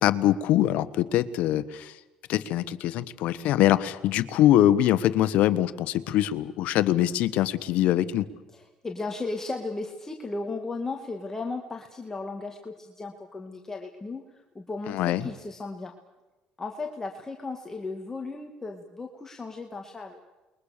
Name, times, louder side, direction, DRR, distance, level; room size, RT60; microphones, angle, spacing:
voice 1, 0.0-1.9 2.3-8.3 14.9-15.3, left 13 dB, 75° left, 13 dB, 1.3 m, -23 dB
voice 2, 8.5-14.2 14.5-15.9 16.6-20.2, left 3 dB, 20° left, 2 dB, 2.1 m, -35 dB
29.0 x 22.0 x 6.8 m, 1.1 s
cardioid pair, 105°, 2 cm